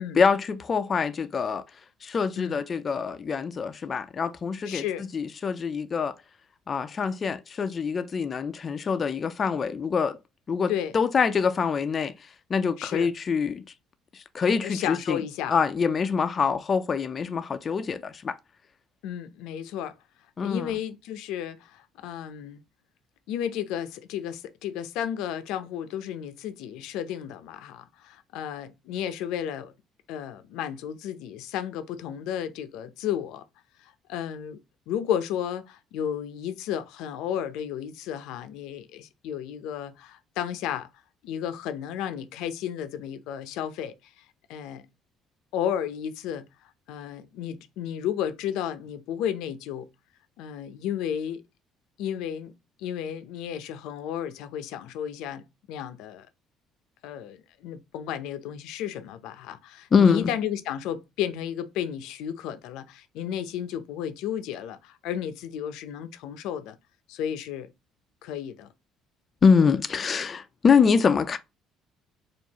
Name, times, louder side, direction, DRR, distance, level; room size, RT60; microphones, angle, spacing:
voice 1, 0.0-1.6 2.0-4.8 5.1-6.1 6.7-10.2 10.5-12.1 12.5-13.6 14.1-15.2 15.5-18.3 20.4-20.7 59.9-60.3 69.4-71.4, left 6 dB, 30° left, 0.4 m, -24 dB
voice 2, 4.6-5.0 10.7-10.9 12.8-13.1 14.6-15.5 19.0-19.9 20.4-22.6 23.3-29.7 30.1-33.4 33.8-34.6 34.9-40.9 41.2-44.2 44.5-44.8 45.5-46.5 46.9-49.9 50.4-51.4 52.0-52.5 52.8-55.4 55.7-56.3 57.0-66.7 67.1-67.7 68.2-68.7, left 9 dB, 80° left, 0.6 m, -33 dB
4.6 x 2.5 x 2.9 m
cardioid pair, 135°, 0 cm